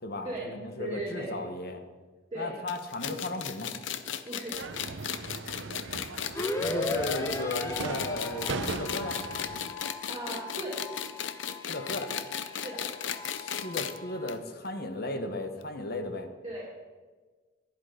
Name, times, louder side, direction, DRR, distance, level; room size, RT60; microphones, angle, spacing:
voice 1, 0.0-1.8 2.3-3.8 6.6-9.2 11.6-12.1 13.3-16.3, left 2 dB, 55° left, 7 dB, 1.2 m, -35 dB
voice 2, 0.8-1.4 2.3-2.6 4.3-4.6 10.1-10.7 12.5-12.8 16.4-16.6, right 2 dB, 25° right, -4 dB, 2.5 m, -37 dB
sound 1, 2.7-14.0 14.3-14.4 14.6-14.7 15.6-15.7, left 8 dB, 75° left, 0.7 m, -36 dB
sound 2, 4.5-9.7, right 3 dB, 75° right, 0.7 m, -39 dB
sound 3, 6.4-14.4, left 1 dB, 15° left, 0.9 m, -38 dB
12.0 x 10.5 x 5.1 m, 1.4 s
head